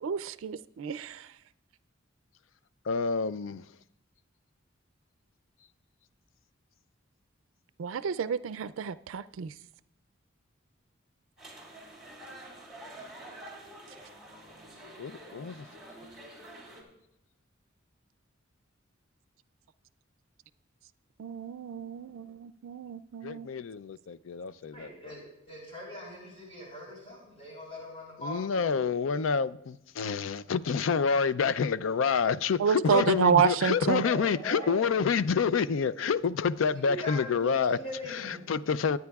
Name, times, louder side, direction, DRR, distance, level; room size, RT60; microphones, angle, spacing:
voice 1, 0.0-1.3 7.8-9.5 21.2-23.5 32.6-34.0, right 6 dB, 85° right, 0.4 m, -29 dB
voice 2, 2.9-3.6 15.0-15.7 23.2-24.9 28.2-37.8 38.1-39.0, left 6 dB, 75° left, 0.4 m, -28 dB
sound 1, 11.4-16.8, right 1 dB, ahead, 3.3 m, -48 dB
voice 3, 24.7-28.7 34.0-34.9 36.7-38.5, left 1 dB, 30° left, 5.1 m, -41 dB
23.5 x 9.4 x 2.3 m
head